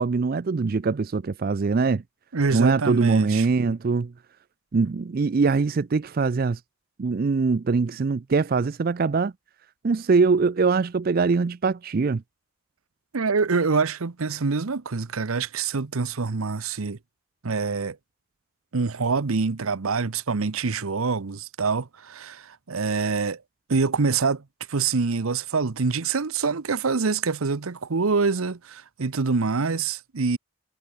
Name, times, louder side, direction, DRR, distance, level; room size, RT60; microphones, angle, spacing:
voice 1, 0.0-2.0 2.5-4.1 4.7-6.6 7.0-9.3 9.8-12.2, right 4 dB, 45° right, 0.4 m, -22 dB
voice 2, 2.3-3.5 13.1-17.0 17.4-18.0 18.7-23.4 23.7-24.4 24.7-30.4, right 4 dB, 85° right, 0.8 m, -25 dB
head